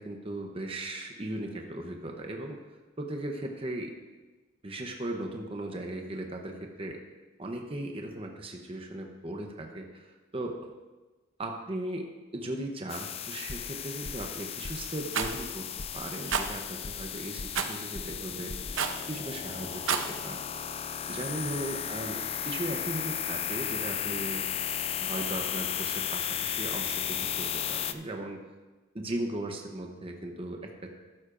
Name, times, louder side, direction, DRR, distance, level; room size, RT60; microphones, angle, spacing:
voice 1, 0.0-2.6 3.0-3.9 4.6-7.0 7.4-10.7 11.4-12.1 12.3-15.7 15.9-18.5 19.1-20.4 21.1-22.2 22.4-24.4 25.0-28.4 28.9-31.0, right 1 dB, 30° right, 2 dB, 0.8 m, -37 dB
sound 1, 12.9-27.9, left 9 dB, 30° left, 0.3 m, -35 dB
sound 2, 13.5-13.8 14.0-14.3 14.6-14.9 15.2-15.5 15.8-16.0 16.3-17.1 17.4-17.7 17.9-18.2 18.5-18.8, left 1 dB, 45° left, 0.8 m, -41 dB
Rattle, 15.1-15.3 16.3-16.5 17.5-17.8 18.7-19.0 19.7-20.1, right 6 dB, 80° right, 0.7 m, -29 dB
13.5 x 11.5 x 2.6 m, 1.2 s
head